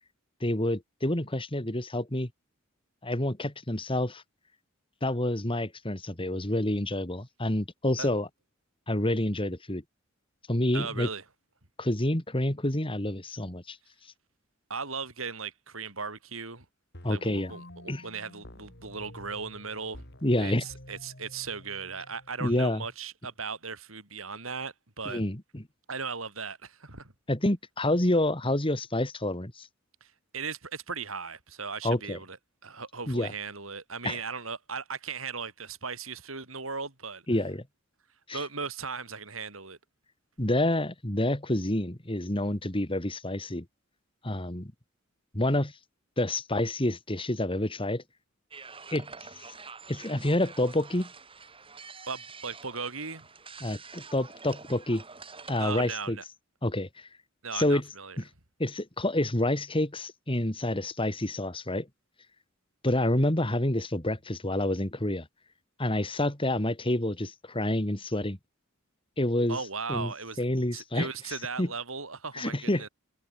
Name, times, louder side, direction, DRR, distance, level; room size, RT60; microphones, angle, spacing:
voice 1, 0.4-2.3 3.0-4.2 5.0-8.3 8.9-9.8 10.5-11.1 11.8-13.8 17.0-17.5 17.9-18.0 20.2-20.6 22.4-22.8 25.1-25.6 27.3-29.7 31.8-32.2 33.1-33.3 34.0-34.2 37.3-37.6 38.3-38.4 40.4-43.6 44.2-44.7 45.3-45.7 46.2-48.0 48.9-49.1 49.9-51.1 53.6-55.0 55.5-56.2 56.6-57.1 57.5-57.8 58.2-58.3 58.6-61.9 62.8-65.3 65.8-68.4 69.2-69.6 69.9-70.1 70.4-71.1 71.6-71.7 72.3-72.8, left 1 dB, 25° left, 2.8 m, -28 dB
voice 2, 10.7-11.2 14.7-16.7 17.1-20.0 20.4-25.2 25.9-27.1 30.0-32.4 32.6-37.2 38.3-39.8 52.1-53.3 55.6-56.2 57.4-58.2 69.5-70.4 70.7-72.9, right 5 dB, 85° right, 5.9 m, -37 dB
sound 1, 16.9-23.0, left 1 dB, 55° left, 6.7 m, -49 dB
sound 2, 48.5-55.9, right 4 dB, 25° right, 6.3 m, -47 dB
head